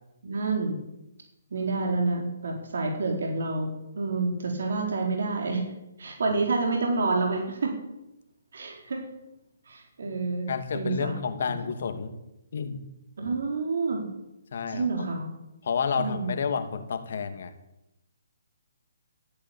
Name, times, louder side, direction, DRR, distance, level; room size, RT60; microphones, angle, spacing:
voice 1, 0.2-0.8 1.5-5.6 6.0-7.8 8.5-9.1 9.7-11.2 13.2-14.1 14.7-15.3 15.9-16.3, right 3 dB, 70° right, 1 dB, 4.2 m, -28 dB
voice 2, 10.5-12.2 12.5-12.8 14.5-14.9 15.6-17.5, left 6 dB, 60° left, 8 dB, 2.4 m, -30 dB
14.0 x 10.0 x 9.0 m, 0.92 s
hypercardioid pair, 140°, 0 cm